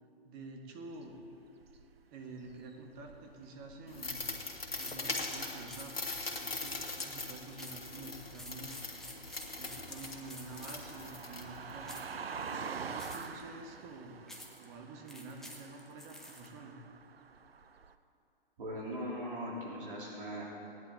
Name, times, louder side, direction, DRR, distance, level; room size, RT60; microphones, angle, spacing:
voice 1, 0.2-1.2 2.1-4.2 4.8-5.9 6.3-9.0 9.6-11.9 12.4-14.2 14.6-16.8, right 3 dB, 30° right, 3 dB, 1.7 m, -48 dB
sound 1, 0.9-2.1 2.4-4.6 6.0-6.6 7.8-17.9, right 5 dB, 90° right, 0.7 m, -47 dB
sound 2, 3.9-11.9, left 3 dB, 85° left, 1.9 m, -41 dB
sound 3, 4.8-5.1 5.7-5.9 6.6-7.0 7.6-7.9 8.3-10.9 11.8-12.2 13.0-13.4 14.3-14.6 15.1-16.5, left 1 dB, ahead, 1.1 m, -50 dB
voice 2, 18.6-20.4, equal, 65° right, -5 dB, 3.7 m, -39 dB
19.0 x 10.5 x 3.9 m, 2.8 s
hypercardioid pair, 125°, 29 cm